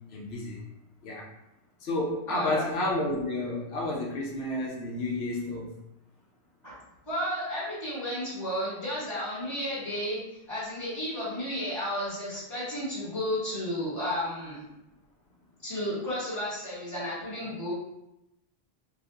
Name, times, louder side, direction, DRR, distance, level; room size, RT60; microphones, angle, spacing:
voice 1, 0.1-0.6 1.0-1.3 1.8-5.8, left 2 dB, 80° left, -2 dB, 0.9 m, -31 dB
voice 2, 2.3-2.6 6.6-6.8 7.1-10.2 10.5-14.6 15.6-17.7, equal, 30° left, -10 dB, 1.1 m, -32 dB
3.5 x 2.5 x 2.6 m, 0.91 s
omnidirectional pair, 1.1 m